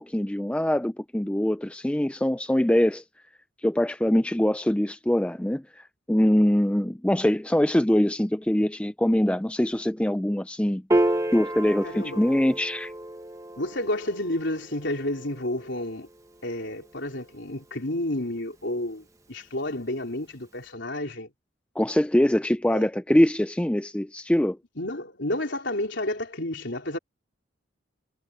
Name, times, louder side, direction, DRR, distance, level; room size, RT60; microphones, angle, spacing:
voice 1, 0.0-3.0 3.6-10.8 11.3-12.9 21.8-24.6, left 1 dB, 5° left, 0.4 m, -23 dB
Piano, 10.9-17.5, right 1 dB, 15° right, 1.2 m, -31 dB
voice 2, 11.8-12.2 13.6-16.1 16.4-21.3 22.7-22.9 24.8-27.0, left 1 dB, 60° left, 4.1 m, -31 dB
head